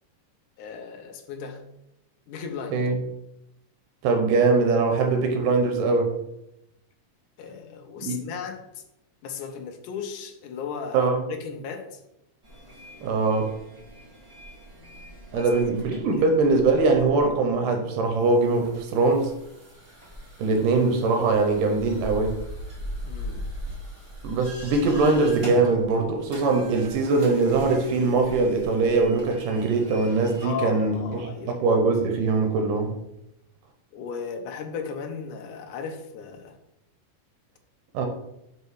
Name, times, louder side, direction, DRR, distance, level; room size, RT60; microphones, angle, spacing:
voice 1, 0.6-1.6 2.3-2.9 7.4-8.8 9.2-12.0 15.3-15.5 23.1-23.4 30.4-31.6 33.9-36.6, left 6 dB, 80° left, 5 dB, 2.2 m, -36 dB
voice 2, 4.0-6.1 8.0-8.2 10.9-11.3 13.0-13.5 15.3-19.3 20.4-22.4 24.2-31.3 31.6-32.9 37.9-38.1, right 3 dB, 85° right, 4 dB, 2.4 m, -22 dB
sound 1, 12.4-30.5, equal, 20° right, 0.8 m, -40 dB
5.5 x 5.4 x 4.8 m, 0.85 s
omnidirectional pair, 3.7 m